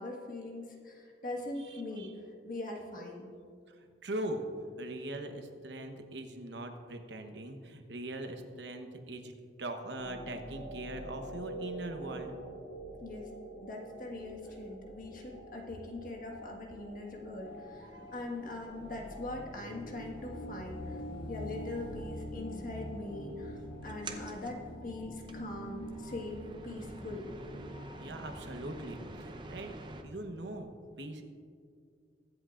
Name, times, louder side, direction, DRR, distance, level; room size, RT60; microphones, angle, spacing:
voice 1, 0.0-2.1 2.4-3.3 13.0-13.3 13.6-21.0 21.3-27.3, left 2 dB, 50° left, 0 dB, 1.6 m, -42 dB
voice 2, 1.6-2.1 4.0-4.5 4.8-9.3 9.6-12.3 17.8-18.2 28.0-30.7 31.0-31.3, right 1 dB, 85° right, 6 dB, 1.0 m, -41 dB
sound 1, 9.9-29.3, equal, 70° left, 2.0 m, -46 dB
sound 2, 17.4-24.7, equal, 25° left, 1.2 m, -57 dB
sound 3, 23.8-30.0, right 2 dB, 25° right, 0.7 m, -48 dB
22.5 x 8.0 x 2.5 m, 2.3 s
head